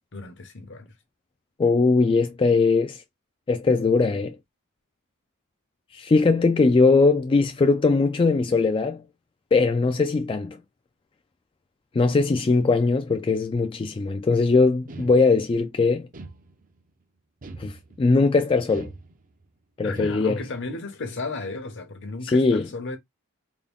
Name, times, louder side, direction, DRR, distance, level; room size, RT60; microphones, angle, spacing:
voice 1, 0.1-0.9 19.8-23.0, left 3 dB, 60° left, 0.9 m, -34 dB
voice 2, 1.6-3.0 3.5-4.4 5.9-9.0 9.5-10.6 11.9-16.0 17.6-18.9 19.8-20.4 22.2-22.7, left 3 dB, 25° left, 0.3 m, -20 dB
sound 1, 14.9-15.6 16.1-16.9 17.4-18.2 18.7-19.5 19.9-20.5, right 2 dB, 40° right, 0.6 m, -42 dB
3.6 x 2.2 x 3.5 m
head